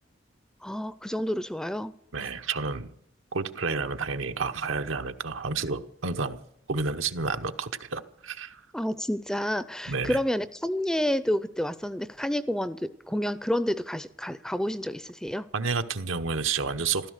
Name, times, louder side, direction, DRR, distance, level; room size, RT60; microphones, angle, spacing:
voice 1, 0.6-1.9 8.7-15.5, equal, 5° left, 14 dB, 0.5 m, -29 dB
voice 2, 2.1-2.9 3.3-6.4 6.7-8.6 9.9-10.2 15.5-17.1, right 4 dB, 85° right, 8 dB, 1.1 m, -30 dB
15.0 x 13.0 x 6.5 m, 0.74 s
head